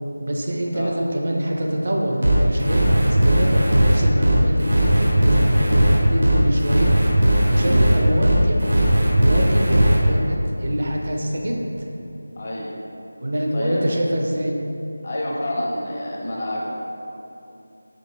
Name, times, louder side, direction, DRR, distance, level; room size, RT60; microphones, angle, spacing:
voice 1, 0.2-6.9 7.4-8.6 9.1-11.7 13.2-14.6, equal, 50° right, 0 dB, 0.5 m, -25 dB
sound 1, 2.2-10.0, right 1 dB, 75° right, 0.9 m, -17 dB
voice 2, 12.4-12.8 13.5-13.8 15.0-16.7, left 1 dB, 40° left, -4 dB, 0.5 m, -28 dB
5.2 x 2.9 x 2.8 m, 2.8 s
figure-of-eight pair, 165°, 0 cm